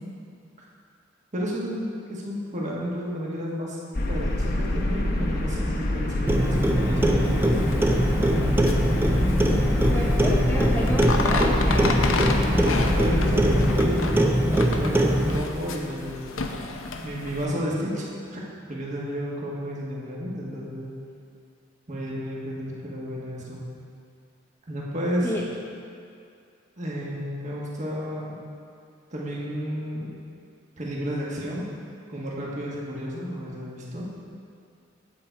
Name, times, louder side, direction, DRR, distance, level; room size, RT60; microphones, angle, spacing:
voice 1, 1.3-3.8 4.1-7.6 12.4-16.4 17.0-18.4 18.7-20.9 21.9-23.6 24.7-25.3 26.8-28.3 29.1-30.1 30.8-31.6 32.1-34.1, equal, 40° right, -5 dB, 1.4 m, -32 dB
sound 1, 3.9-13.8, left 1 dB, 50° left, 1.0 m, -26 dB
Clock, 6.3-15.4, equal, 10° right, 0.5 m, -22 dB
sound 2, 7.2-17.5, left 3 dB, 85° left, 0.7 m, -32 dB
voice 2, 9.9-12.9 25.2-25.4, equal, 10° left, -4 dB, 0.9 m, -30 dB
8.6 x 7.9 x 4.6 m, 2.4 s
head